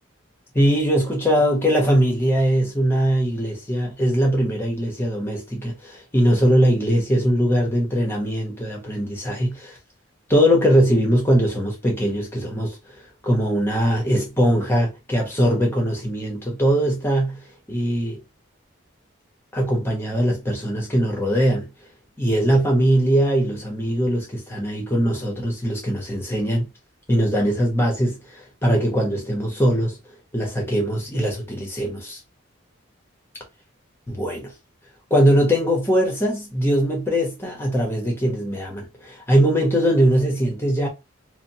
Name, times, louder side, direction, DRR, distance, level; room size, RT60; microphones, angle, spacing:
voice 1, 0.5-9.7 10.3-12.8 13.2-17.4 17.7-18.2 19.5-21.7 22.2-26.7 27.1-28.2 28.6-30.0 30.3-32.2 34.1-34.5 35.1-40.9, equal, 10° left, 0.8 m, -21 dB
2.8 x 2.1 x 2.7 m
head